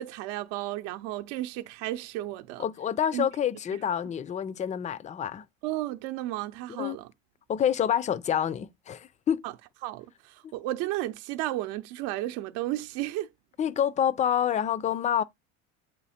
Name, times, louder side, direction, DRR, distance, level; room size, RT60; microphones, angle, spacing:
voice 1, 0.0-2.6 3.1-3.3 5.6-7.1 9.4-9.5 9.8-13.3, right 15 dB, 70° right, 0.7 m, -33 dB
voice 2, 2.6-5.5 6.8-7.0 7.5-9.4 10.4-10.5 13.6-15.2, left 9 dB, 20° left, 0.3 m, -27 dB
8.2 x 2.8 x 4.2 m
supercardioid pair, 110°, 40 cm